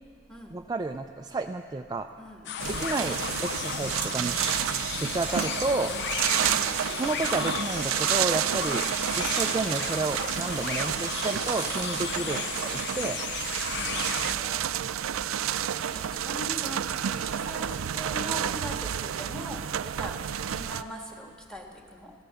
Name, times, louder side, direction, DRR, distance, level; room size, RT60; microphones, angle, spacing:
voice 1, 0.5-2.1 2.7-4.4 5.0-5.9 7.0-8.9 9.2-12.4 12.7-13.2, right 3 dB, 20° right, 5 dB, 0.3 m, -31 dB
voice 2, 2.2-2.5 5.5-5.9 6.3-6.6 8.6-8.9 12.1-12.4 13.7-14.7 15.9-20.2 20.5-22.1, equal, 5° left, 1 dB, 1.5 m, -41 dB
sound 1, 2.4-14.3, left 9 dB, 55° left, 0.4 m, -34 dB
sound 2, 2.6-20.8, right 10 dB, 85° right, 0.4 m, -30 dB
15.0 x 12.5 x 7.0 m, 2.1 s
head